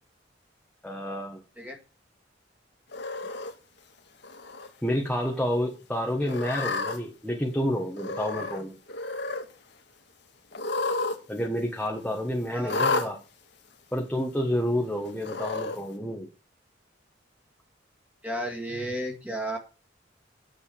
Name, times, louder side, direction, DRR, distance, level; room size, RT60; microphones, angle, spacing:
voice 1, 0.8-1.4 4.8-8.7 11.3-13.2 13.9-16.3, equal, 5° left, 0 dB, 1.3 m, -29 dB
Cat, 2.9-3.5 4.2-4.7 5.0-5.1 6.2-7.0 7.9-8.6 8.9-9.4 10.5-11.2 11.4-11.5 12.7-13.1 14.0-14.1 15.2-15.8, left 3 dB, 65° left, 1.7 m, -30 dB
voice 2, 12.5-12.9 18.2-19.6, right 1 dB, 10° right, 1 dB, 2.1 m, -33 dB
8.9 x 7.3 x 6.9 m, 0.35 s
head